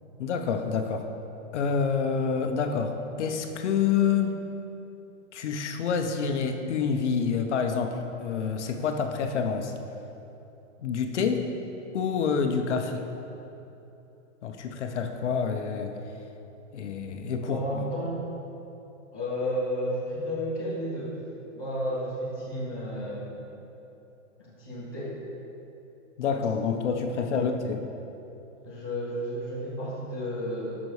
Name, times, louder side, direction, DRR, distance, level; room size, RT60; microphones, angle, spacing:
voice 1, 0.2-1.1 1.5-4.4 5.3-9.7 10.8-11.5 11.9-13.1 14.4-16.0 16.7-17.6 26.2-27.8, left 6 dB, 65° left, 6 dB, 0.8 m, -27 dB
voice 2, 17.4-18.2 19.1-21.2 21.5-23.4 24.4-25.2 27.3-27.4 28.6-30.8, equal, 10° right, -10 dB, 0.3 m, -32 dB
11.5 x 6.0 x 3.2 m, 3.0 s
hypercardioid pair, 170°, 38 cm